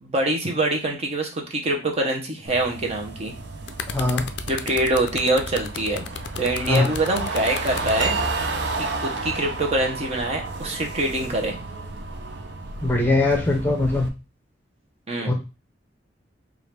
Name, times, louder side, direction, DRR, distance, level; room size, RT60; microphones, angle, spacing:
voice 1, 0.0-3.3 4.5-8.2 8.8-11.6 15.1-15.3, right 1 dB, 35° right, 1 dB, 0.9 m, -25 dB
sound 1, 2.5-14.1, right 3 dB, 70° right, 0.6 m, -32 dB
sound 2, 3.4-8.1 9.0-9.2, left 7 dB, 70° left, 0.4 m, -34 dB
voice 2, 3.9-4.3 6.6-6.9 12.8-14.1 15.3-15.4, left 2 dB, 10° left, 1 dB, 0.7 m, -21 dB
sound 3, 8.0-9.1, right 6 dB, 90° right, 1.3 m, -32 dB
4.7 x 2.5 x 3.3 m, 0.29 s
head